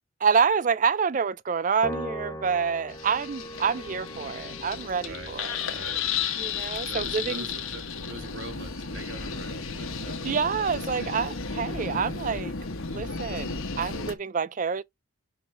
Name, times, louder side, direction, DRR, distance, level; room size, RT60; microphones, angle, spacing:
voice 1, 0.2-5.5 6.3-7.5 10.2-12.6 12.9-14.8, right 6 dB, 35° right, 0.4 m, -27 dB
Piano, 1.8-8.4, equal, 20° left, 0.5 m, -41 dB
sound 1, 2.9-14.2, left 5 dB, 85° left, 1.2 m, -33 dB
voice 2, 5.7-6.1 6.4-11.1, right 2 dB, 60° right, 1.6 m, -43 dB
5.8 x 5.1 x 3.2 m
head